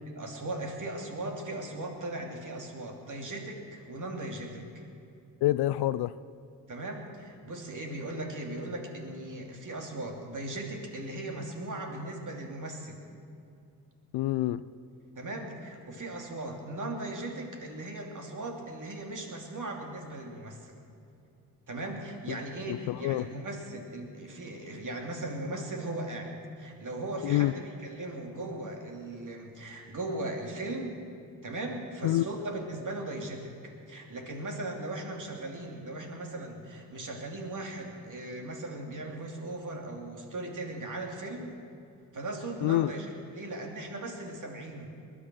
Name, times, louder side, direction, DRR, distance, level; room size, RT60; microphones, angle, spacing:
voice 1, 0.1-4.9 6.7-13.0 15.2-20.8 21.7-30.9 31.4-41.5 42.1-44.9, right 2 dB, 40° right, 2.8 m, -38 dB
voice 2, 5.4-6.1 14.1-14.7 22.7-23.3 27.2-27.5 32.0-32.3 42.6-42.9, left 15 dB, 55° left, 0.5 m, -27 dB
20.0 x 10.5 x 6.2 m
hypercardioid pair, 45°, 46 cm